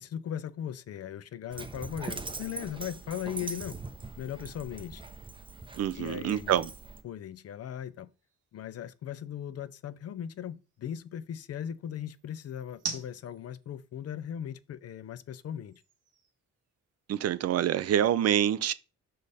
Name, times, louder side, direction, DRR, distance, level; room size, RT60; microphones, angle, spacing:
voice 1, 0.0-3.8 4.2-5.0 5.9-6.6 7.0-8.1 8.5-15.7, left 9 dB, 55° left, 0.6 m, -38 dB
Dog, 1.5-7.0, right 3 dB, 15° right, 0.7 m, -42 dB
sound 1, 3.0-17.3, right 6 dB, 80° right, 2.0 m, -49 dB
voice 2, 5.8-6.7 17.1-18.7, right 10 dB, 55° right, 0.5 m, -26 dB
5.4 x 5.1 x 4.1 m
cardioid pair, 90°, 30 cm